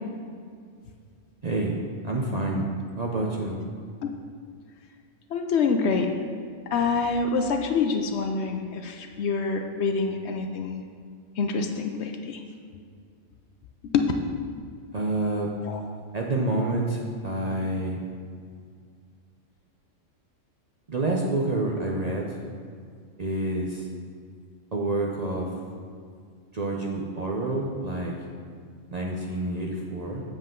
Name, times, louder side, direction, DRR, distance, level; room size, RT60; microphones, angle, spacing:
voice 1, 1.4-2.6 3.0-3.6 14.9-15.5 16.1-18.0 20.9-22.5 23.2-23.9 24.7-25.5 26.5-28.2 28.9-30.2, right 2 dB, 40° right, -1 dB, 0.6 m, -28 dB
voice 2, 5.3-6.2 6.7-10.8 11.4-12.4 13.9-14.0 15.7-15.8, left 4 dB, 65° left, 4 dB, 0.8 m, -26 dB
7.7 x 7.4 x 3.7 m, 2.1 s
omnidirectional pair, 1.3 m